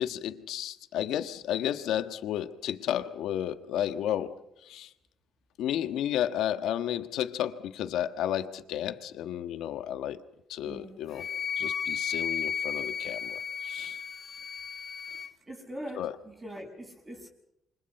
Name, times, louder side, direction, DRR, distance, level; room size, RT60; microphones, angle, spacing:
voice 1, 0.0-4.9 5.6-11.3 11.6-14.0 16.0-16.1, left 11 dB, 85° left, 1.4 m, -32 dB
voice 2, 10.6-11.0 15.1-17.3, equal, 25° right, 7.2 m, -43 dB
Wind instrument woodwind instrument, 11.1-15.3, left 7 dB, 60° left, 1.5 m, -34 dB
28.5 x 25.0 x 5.8 m
cardioid pair, 90°, 0 cm